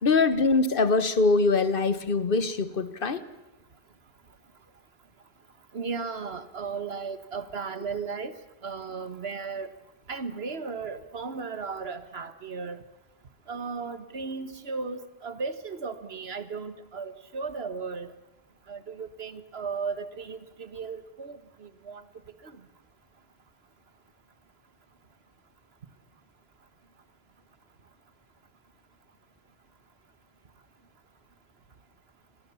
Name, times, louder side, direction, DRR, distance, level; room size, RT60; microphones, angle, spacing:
voice 1, 0.0-3.2, left 3 dB, 60° left, 14 dB, 1.3 m, -23 dB
voice 2, 5.7-8.3 8.6-9.7 10.1-12.8 13.5-18.1 18.7-22.0 22.4-22.6, right 5 dB, 75° right, 12 dB, 1.7 m, -35 dB
30.0 x 21.5 x 7.1 m, 0.99 s
omnidirectional pair, 1.0 m